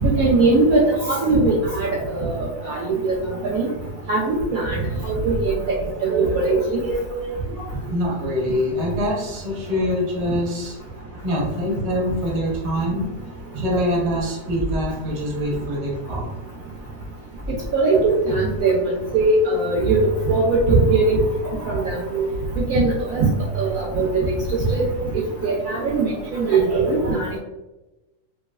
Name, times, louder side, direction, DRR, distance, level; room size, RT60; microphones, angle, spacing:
voice 1, 0.0-2.3 2.6-3.1 3.4-3.7 4.1-5.6 6.0-7.2 17.7-18.7 19.1-21.2 21.7-22.3 22.6-23.3 23.5-24.3 24.7-24.8 25.4-27.3, right 3 dB, 70° right, -2 dB, 0.8 m, -20 dB
voice 2, 7.9-10.8 11.2-13.1 13.6-16.3, equal, 35° right, -3 dB, 0.6 m, -24 dB
3.1 x 2.7 x 2.3 m, 1.0 s
omnidirectional pair, 1.9 m